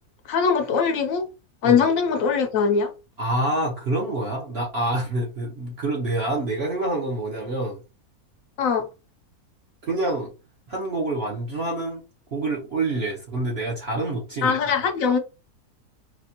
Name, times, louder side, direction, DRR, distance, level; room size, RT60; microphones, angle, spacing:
voice 1, 0.3-1.3 1.6-2.9 8.6-8.8 14.4-15.2, left 6 dB, 70° left, 0.9 m, -21 dB
voice 2, 3.2-7.8 9.8-10.3 10.7-12.0 12.3-14.5, right 2 dB, 50° right, 0.9 m, -27 dB
4.2 x 2.4 x 2.8 m
omnidirectional pair, 1.6 m